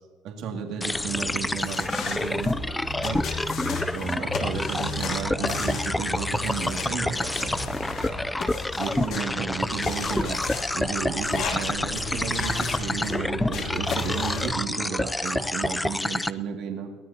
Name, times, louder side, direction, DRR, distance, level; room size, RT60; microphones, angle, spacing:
voice 1, 0.2-2.6 2.9-3.2 3.9-7.6 8.8-10.4 10.7-16.9, right 7 dB, 65° right, 2 dB, 2.3 m, -33 dB
sound 1, 0.8-16.3, left 1 dB, 10° left, 0.4 m, -28 dB
sound 2, 0.9-14.6, left 3 dB, 55° left, 2.9 m, -34 dB
voice 2, 0.9-1.2 3.4-4.0 8.2-9.8 12.6-13.0, right 3 dB, 25° right, 1 dB, 1.9 m, -53 dB
22.5 x 18.0 x 2.9 m, 1.4 s
cardioid pair, 135°, 0 cm